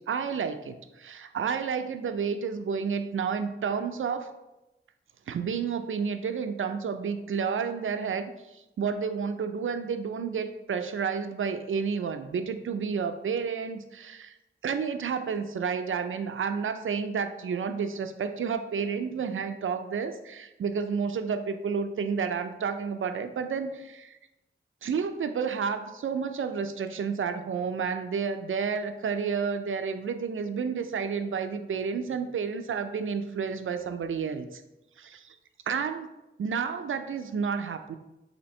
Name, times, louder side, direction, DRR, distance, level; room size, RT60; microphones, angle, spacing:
voice 1, 0.1-4.3 5.3-14.3 14.6-24.2 24.8-34.6 35.0-35.4 35.7-36.1 36.4-37.9, right 6 dB, 75° right, 8 dB, 0.4 m, -31 dB
4.3 x 2.8 x 4.2 m, 0.96 s
cardioid pair, 50°, 21 cm